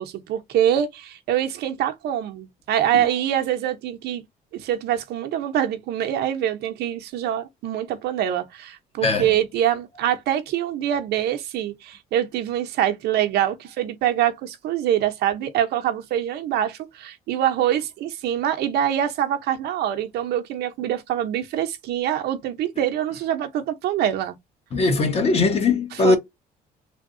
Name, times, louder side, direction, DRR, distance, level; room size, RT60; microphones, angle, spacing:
voice 1, 0.0-4.2 4.5-24.4 25.9-26.2, right 11 dB, 75° right, 0.7 m, -24 dB
voice 2, 9.0-9.3 24.7-26.2, left 3 dB, 35° left, 1.1 m, -20 dB
3.4 x 2.2 x 2.6 m
cardioid pair, 110°, 17 cm